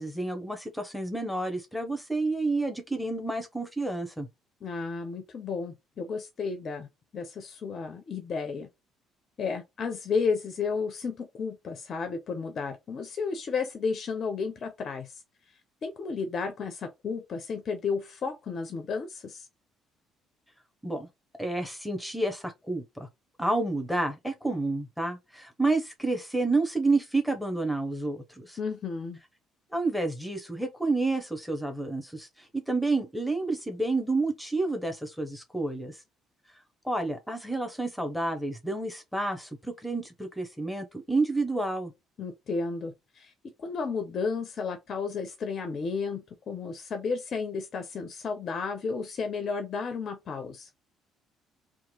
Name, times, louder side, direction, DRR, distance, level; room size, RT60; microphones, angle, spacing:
voice 1, 0.0-4.3 20.8-21.1 21.4-23.1 23.4-28.6 29.7-36.0 36.8-41.9, right 2 dB, ahead, 0.7 m, -29 dB
voice 2, 4.6-6.9 7.1-8.7 9.4-15.2 15.8-19.5 28.6-29.2 42.2-50.7, left 5 dB, 45° left, 0.4 m, -33 dB
2.8 x 2.2 x 2.8 m
figure-of-eight pair, 50°, 0 cm